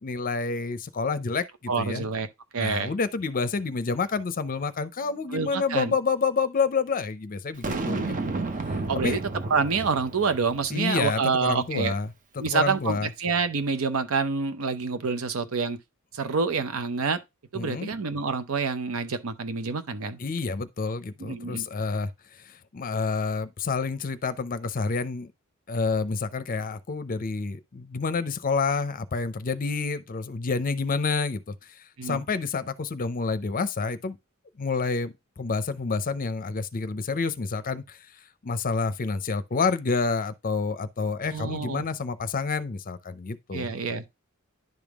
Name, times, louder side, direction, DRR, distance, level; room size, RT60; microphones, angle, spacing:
voice 1, 0.0-2.1 2.6-8.4 8.9-9.2 10.7-12.1 12.4-13.1 17.5-17.9 20.2-22.1 22.5-25.3 25.7-31.6 32.0-34.2 34.6-38.0 38.4-43.7, left 4 dB, 40° left, 0.6 m, -28 dB
voice 2, 1.7-2.3 2.5-2.9 5.3-5.9 8.9-9.2 9.5-11.9 12.4-15.8 16.1-17.2 17.5-20.2 21.2-21.7 32.0-32.2 41.3-41.9 43.5-44.0, right 5 dB, 75° right, 0.7 m, -27 dB
Boom, 7.6-10.9, right 3 dB, 40° right, 0.6 m, -32 dB
10.5 x 3.6 x 3.5 m
head